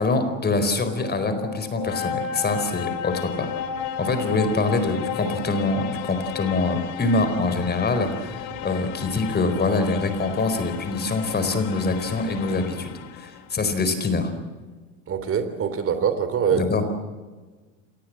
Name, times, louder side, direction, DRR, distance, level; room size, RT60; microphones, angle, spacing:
voice 1, 0.0-3.5 4.0-14.3 16.5-16.8, left 3 dB, 25° left, 9 dB, 4.4 m, -24 dB
sound 1, 0.7-13.5, left 9 dB, 55° left, 2.7 m, -33 dB
voice 2, 15.1-16.6, right 7 dB, 35° right, 10 dB, 3.4 m, -23 dB
26.5 x 20.0 x 7.6 m, 1.3 s
hypercardioid pair, 95°, 39 cm